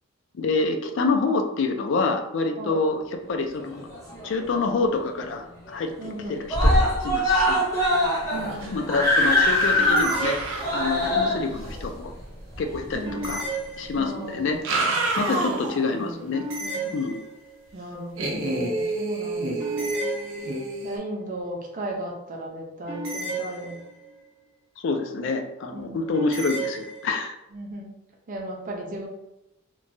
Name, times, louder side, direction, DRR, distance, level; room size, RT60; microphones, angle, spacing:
voice 1, 0.3-3.0 3.3-3.9 4.2-7.6 8.7-10.5 10.7-12.1 12.6-13.4 13.8-14.6 15.2-16.4 16.9-17.2 24.8-27.4, left 3 dB, 60° left, 5 dB, 0.3 m, -27 dB
voice 2, 2.6-2.9 6.0-6.5 8.3-9.0 12.9-13.4 14.0-14.5 14.8-14.9 15.3-15.6 15.9-16.3 16.6-17.0 17.7-20.0 20.8-23.8 25.7-26.2 27.5-27.9 28.3-29.1, right 1 dB, 40° right, 0 dB, 0.5 m, -36 dB
Screaming, 3.6-4.5 4.9-5.0 5.3-5.4 5.7-6.2 6.5-13.3 14.1-14.2, left 1 dB, 15° left, 0.6 m, -23 dB
sound 1, 8.3-8.7 9.0-11.9 13.2-13.3 14.4-15.9 16.3-16.4 18.2-21.0, right 2 dB, 90° right, 0.6 m, -29 dB
sound 2, 9.8-11.1 13.0-14.4 16.3-17.6 19.6-20.9 22.9-24.2 26.1-27.1, right 2 dB, 60° right, 0.9 m, -34 dB
3.0 x 2.2 x 2.6 m, 0.92 s
head